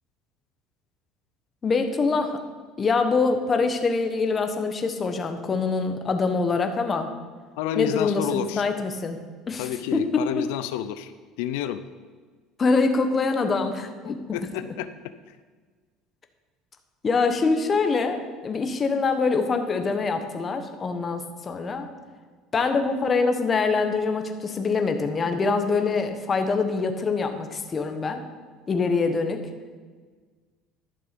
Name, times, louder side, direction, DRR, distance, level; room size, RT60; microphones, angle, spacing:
voice 1, 1.6-2.4 2.8-7.1 7.8-9.2 9.5-10.3 12.6-14.2 17.0-21.9 22.5-28.2 28.7-29.4, left 4 dB, 25° left, 7 dB, 1.0 m, -24 dB
voice 2, 7.6-8.6 9.6-11.8 14.0-14.9 15.3-15.4, left 10 dB, 90° left, 11 dB, 0.4 m, -30 dB
11.5 x 6.9 x 5.1 m, 1.5 s
cardioid pair, 135°, 0 cm